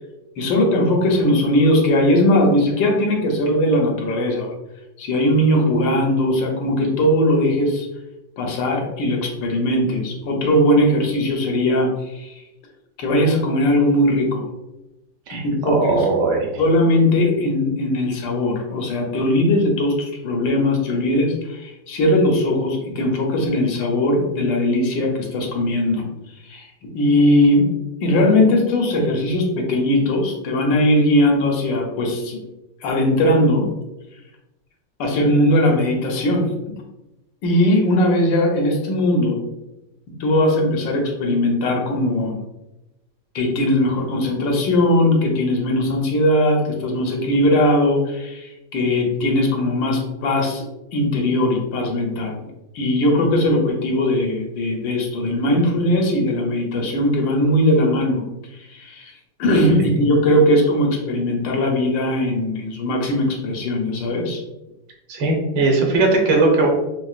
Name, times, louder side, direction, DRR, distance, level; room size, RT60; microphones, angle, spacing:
voice 1, 0.4-4.5 5.0-7.9 8.4-12.3 13.0-14.4 15.3-16.1 16.6-26.0 26.4-26.7 26.9-27.7 28.0-32.4 32.8-33.7 35.0-36.5 37.4-39.4 40.2-42.4 43.3-50.7 50.9-52.4 52.7-58.2 58.7-59.1 59.4-64.4, left 1 dB, 85° left, 1 dB, 1.4 m, -19 dB
voice 2, 15.3-16.5 65.1-66.7, right 3 dB, 85° right, 0 dB, 1.5 m, -19 dB
4.7 x 2.0 x 2.3 m, 0.97 s
omnidirectional pair, 2.0 m